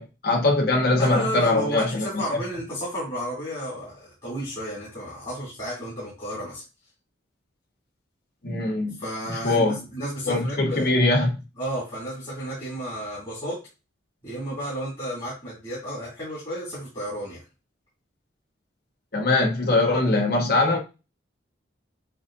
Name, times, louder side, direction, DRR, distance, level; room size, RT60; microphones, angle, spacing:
voice 1, 0.0-2.1 8.4-8.9 9.4-9.8 10.3-11.3 19.1-20.8, left 2 dB, 55° left, 1.2 m, -22 dB
voice 2, 1.0-6.6 9.0-11.0 11.6-13.6 14.2-17.4, equal, 25° left, 2.6 m, -32 dB
7.5 x 2.7 x 2.6 m
head